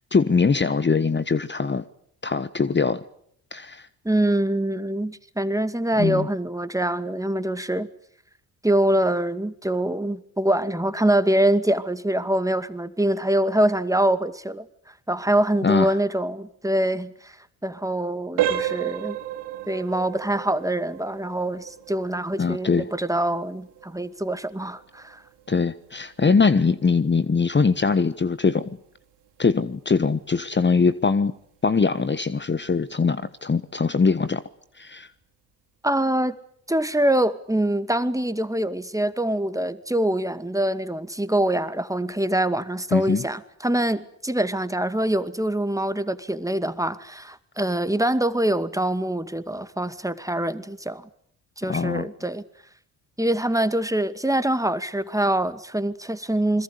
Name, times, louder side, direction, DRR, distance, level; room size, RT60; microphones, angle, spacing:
voice 1, 0.1-1.8 2.2-3.0 3.5-3.9 6.0-6.3 15.6-16.0 22.4-22.9 25.5-28.8 29.4-31.3 31.6-34.4 34.8-35.1 42.9-43.2 51.7-52.0, left 4 dB, 25° left, 1.3 m, -22 dB
voice 2, 4.0-7.9 8.6-14.7 15.1-17.4 17.6-19.2 19.7-25.2 35.8-36.4 36.7-51.1 51.6-52.4 53.2-56.6, right 1 dB, 10° right, 2.2 m, -24 dB
sound 1, 18.4-29.0 29.4-29.6 30.2-30.3 30.8-31.0, right 11 dB, 75° right, 3.7 m, -33 dB
28.0 x 22.0 x 8.3 m
hypercardioid pair, 50°, 41 cm